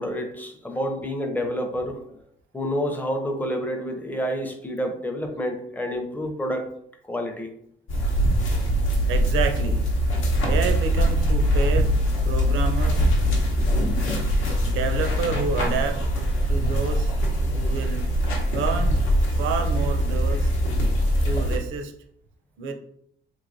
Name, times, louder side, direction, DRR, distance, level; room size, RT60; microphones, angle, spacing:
voice 1, 0.0-2.2 2.5-6.7 7.1-7.5, equal, 10° left, 4 dB, 0.5 m, -29 dB
sound 1, 7.9-21.6, equal, 80° left, 0.9 m, -22 dB
voice 2, 9.1-9.8 10.5-11.9 12.2-13.1 14.6-17.1 17.5-18.1 18.5-19.0 19.4-20.5 21.2-21.9 22.6-22.7, right 5 dB, 75° right, 6 dB, 0.5 m, -29 dB
3.0 x 2.9 x 2.6 m, 0.69 s
cardioid pair, 90°, 20 cm